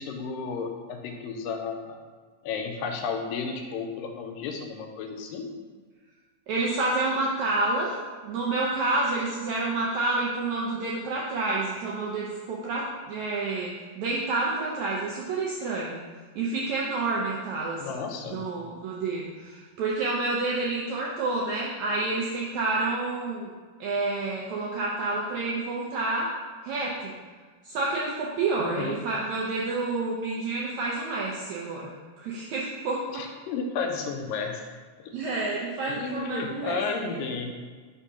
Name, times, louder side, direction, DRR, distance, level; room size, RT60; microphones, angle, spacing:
voice 1, 0.0-2.0 2.4-5.5 17.8-18.5 28.6-29.0 33.1-34.6 35.0-35.1 35.9-37.5, left 5 dB, 85° left, 3 dB, 2.2 m, -33 dB
voice 2, 6.5-8.0 8.2-16.0 16.3-17.8 18.3-23.5 23.8-26.3 26.6-27.1 27.6-33.2 35.1-36.8 37.1-37.2, right 3 dB, 80° right, -4 dB, 1.6 m, -29 dB
5.0 x 3.6 x 5.6 m, 1.5 s
omnidirectional pair, 4.0 m